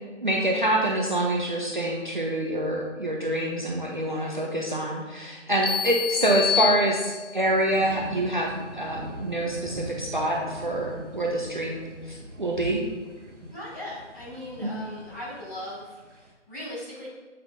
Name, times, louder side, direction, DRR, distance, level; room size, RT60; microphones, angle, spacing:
voice 1, 0.2-11.8 12.1-12.8 14.6-14.7, right 1 dB, 40° right, -1 dB, 0.6 m, -26 dB
sound 1, 5.6-7.5, left 8 dB, 70° left, 1.5 m, -28 dB
sound 2, 7.4-16.3, equal, 75° right, 1.7 m, -41 dB
voice 2, 13.5-17.1, left 1 dB, 15° left, -12 dB, 1.7 m, -39 dB
8.0 x 5.5 x 2.6 m, 1.4 s
figure-of-eight pair, 175°, 37 cm